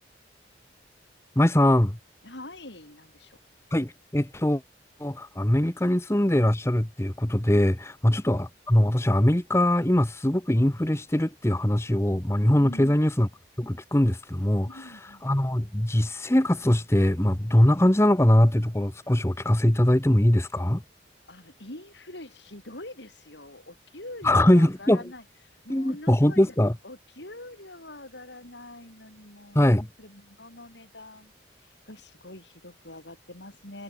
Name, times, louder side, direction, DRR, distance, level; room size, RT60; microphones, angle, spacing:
voice 1, 1.4-2.0 3.7-4.6 5.0-13.3 13.6-14.8 15.2-20.8 24.2-25.0 25.7-26.8 29.5-29.9, left 1 dB, 15° left, 0.9 m, -22 dB
voice 2, 2.2-3.4 12.6-13.0 14.6-15.3 21.3-26.6 26.8-31.3 31.6-33.8, left 1 dB, 75° left, 7.4 m, -44 dB
head